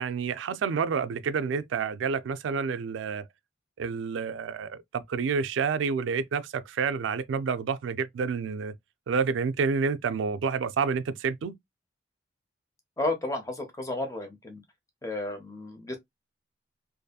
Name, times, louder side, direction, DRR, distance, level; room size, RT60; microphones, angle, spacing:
voice 1, 0.0-3.2 3.8-8.7 9.1-11.5, right 5 dB, 80° right, 0.3 m, -29 dB
voice 2, 13.0-14.6 15.0-16.0, left 2 dB, 15° left, 0.6 m, -32 dB
2.7 x 2.5 x 2.2 m
head